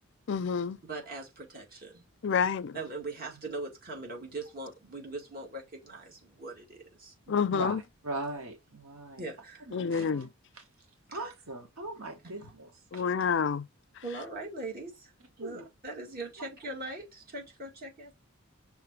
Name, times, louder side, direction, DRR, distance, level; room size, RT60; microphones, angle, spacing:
voice 1, 0.3-0.8 2.2-2.7 7.3-7.8 9.7-10.3 12.9-13.6, left 6 dB, 55° left, 0.4 m, -28 dB
voice 2, 0.9-2.0 2.4-2.5 2.7-7.1 9.2-9.6 11.1-11.3 12.2-12.5 14.0-14.9 15.4-18.1, right 2 dB, 40° right, 2.0 m, -41 dB
voice 3, 7.3-7.7 8.0-9.2 9.7-10.2 10.5-10.6 11.1-12.7 15.4-15.6, right 2 dB, 85° right, 1.6 m, -39 dB
5.8 x 3.5 x 4.6 m
head